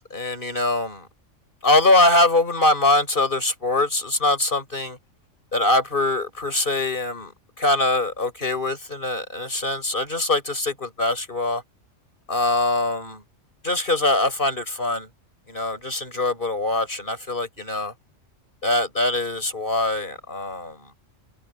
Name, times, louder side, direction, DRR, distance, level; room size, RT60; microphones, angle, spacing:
voice 1, 0.0-1.1 1.6-5.0 5.5-7.3 7.6-11.6 12.3-13.2 13.6-15.1 15.5-17.9 18.6-20.8, left 2 dB, 45° left, 6.0 m, -23 dB
omnidirectional pair, 1.3 m